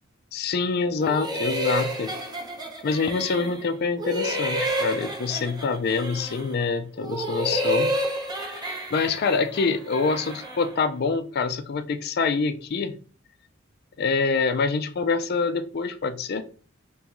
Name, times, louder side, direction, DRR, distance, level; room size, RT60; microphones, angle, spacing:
voice 1, 0.3-2.2 2.8-7.9 8.4-13.0 14.0-16.4, left 4 dB, 50° left, 9 dB, 0.4 m, -26 dB
sound 1, 1.0-3.7 4.0-6.6 7.0-10.7, right 1 dB, 20° right, 0.6 m, -30 dB
3.0 x 3.0 x 3.5 m, 0.40 s
head